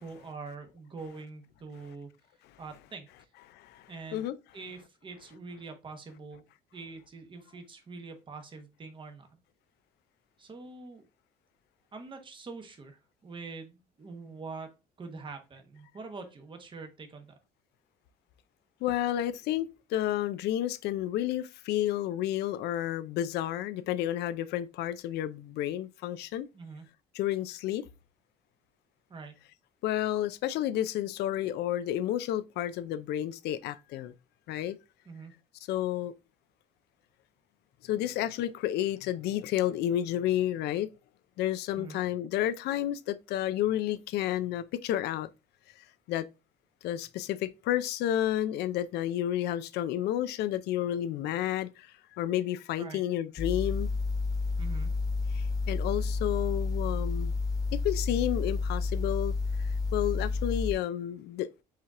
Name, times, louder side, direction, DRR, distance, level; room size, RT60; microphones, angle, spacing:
voice 1, 0.0-2.1 2.6-3.1 3.9-4.2 4.5-6.4 6.7-9.3 10.4-11.0 11.9-14.7 15.0-17.4 26.5-26.9 29.1-29.4 35.1-35.3 41.8-42.0 52.8-53.0 54.6-55.0, right 4 dB, 30° right, 1.0 m, -44 dB
voice 2, 18.8-26.5 27.1-27.8 29.8-34.1 34.5-34.8 35.7-36.1 37.8-40.9 41.4-45.3 46.1-46.3 46.8-51.9 52.2-53.9 55.3-57.3 57.7-59.3 59.9-61.5, left 12 dB, 80° left, 0.5 m, -31 dB
sound 1, 53.4-60.7, left 3 dB, 20° left, 1.3 m, -30 dB
4.8 x 2.9 x 3.6 m
cardioid pair, 110°, 17 cm